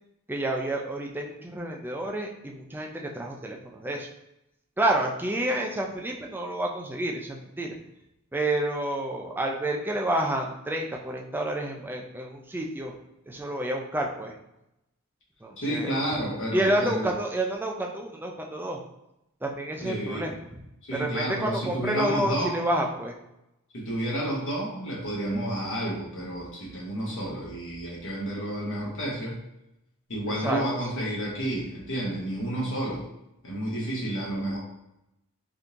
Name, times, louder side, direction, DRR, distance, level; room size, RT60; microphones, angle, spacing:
voice 1, 0.3-4.1 4.8-7.7 8.3-13.0 13.3-14.3 15.4-16.0 16.5-18.8 19.4-20.3 20.9-23.2 30.4-30.6, right 1 dB, 10° right, 1 dB, 0.3 m, -29 dB
voice 2, 15.6-17.1 19.8-20.3 20.8-22.6 23.7-29.4 30.1-33.1 33.4-34.6, right 1 dB, 60° left, -4 dB, 0.9 m, -30 dB
3.5 x 2.8 x 2.5 m, 0.88 s
head